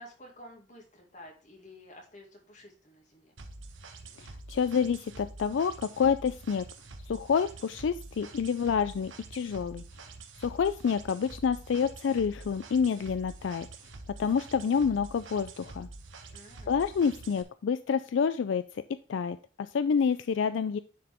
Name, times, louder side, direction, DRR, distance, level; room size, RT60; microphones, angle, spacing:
voice 1, 0.0-3.3 16.3-16.7, left 1 dB, 40° left, 0 dB, 2.3 m, -51 dB
sound 1, 3.4-17.4, right 3 dB, 90° right, 1.1 m, -47 dB
voice 2, 4.2-6.6 7.1-9.8 10.4-13.7 14.2-15.9 16.7-18.8 19.1-20.8, left 6 dB, 75° left, 12 dB, 0.4 m, -28 dB
10.0 x 4.7 x 3.6 m, 0.37 s
head